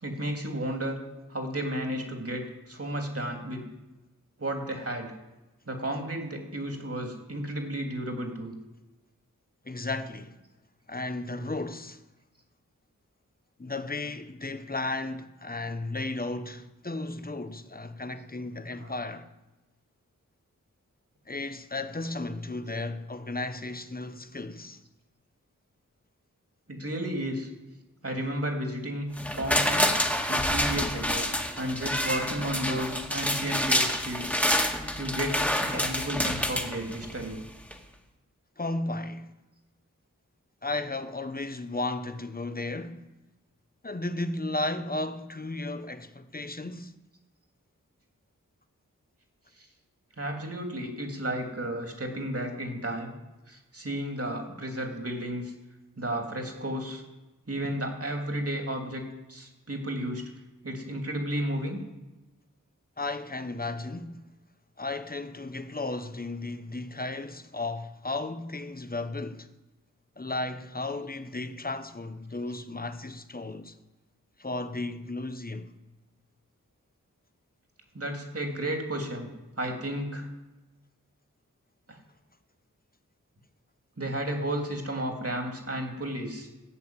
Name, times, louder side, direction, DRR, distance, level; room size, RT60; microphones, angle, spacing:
voice 1, 0.0-1.0 1.3-3.6 4.4-5.1 5.7-8.5 18.8-18.9 26.7-27.5 28.0-29.9 30.3-31.3 31.6-34.4 35.0-37.4 49.6-49.7 50.2-53.1 53.5-55.5 56.0-57.0 57.5-60.2 60.6-61.8 77.9-79.3 79.6-80.3 81.9-82.0 84.0-86.5, right 1 dB, 45° right, 3.0 m, -33 dB
voice 2, 9.6-10.4 10.9-12.0 13.6-19.3 21.3-24.8 38.6-39.3 40.6-43.1 43.8-46.9 63.0-64.2 64.8-69.5 70.2-73.8 74.4-75.7, left 2 dB, 30° left, 1.1 m, -34 dB
sound 1, 29.2-37.3 37.7-37.8, equal, 5° left, 1.9 m, -28 dB
14.5 x 6.9 x 9.0 m
wide cardioid pair, 50°, 32 cm